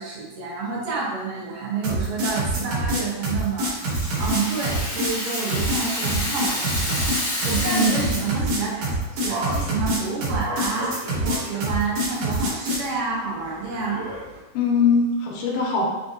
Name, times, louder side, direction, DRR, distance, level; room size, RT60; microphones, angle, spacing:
voice 1, 0.0-3.7 4.2-7.1 7.4-14.0, right 4 dB, 90° right, -4 dB, 2.5 m, -29 dB
sound 1, 1.8-12.9, right 1 dB, 70° right, 2.2 m, -25 dB
Rattle (instrument), 3.4-8.5, left 1 dB, 60° left, 0.7 m, -29 dB
voice 2, 7.7-8.2 14.5-15.9, left 3 dB, 85° left, -2 dB, 2.2 m, -21 dB
sound 2, 8.4-14.4, right 1 dB, 55° right, 1.9 m, -37 dB
5.9 x 2.6 x 2.5 m, 1.1 s
omnidirectional pair, 3.7 m